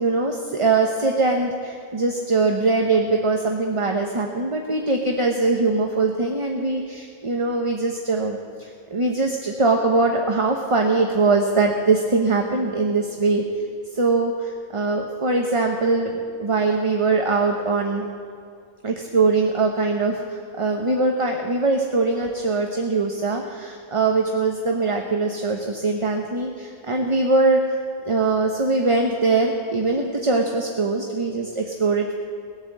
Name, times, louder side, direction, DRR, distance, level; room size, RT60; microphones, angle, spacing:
voice 1, 0.0-13.4 13.9-18.1 18.8-27.8 28.0-32.1, right 3 dB, 25° right, 2 dB, 0.9 m, -22 dB
19.5 x 8.7 x 7.4 m, 2.4 s
omnidirectional pair, 1.3 m